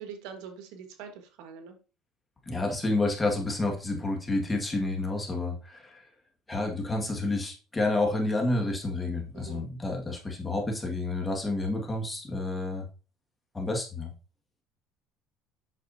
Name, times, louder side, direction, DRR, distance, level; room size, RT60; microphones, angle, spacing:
voice 1, 0.0-1.8 9.3-9.7, right 6 dB, 80° right, 6 dB, 1.5 m, -43 dB
voice 2, 2.5-6.0 6.5-12.8 13.5-14.1, left 2 dB, 15° left, 1 dB, 1.8 m, -29 dB
8.2 x 6.1 x 2.7 m, 0.34 s
cardioid pair, 130°, 0 cm